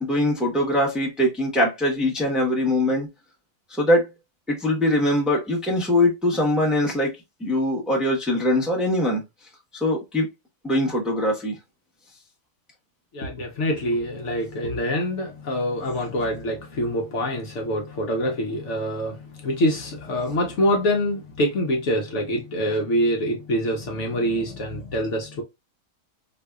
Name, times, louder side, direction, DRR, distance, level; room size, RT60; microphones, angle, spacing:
voice 1, 0.0-3.1 3.8-4.1 4.5-7.1 7.4-9.2 9.8-10.3 10.6-11.6, left 1 dB, ahead, 0.8 m, -22 dB
voice 2, 13.1-25.4, equal, 65° left, 1.1 m, -25 dB
4.0 x 2.6 x 2.3 m
omnidirectional pair, 1.4 m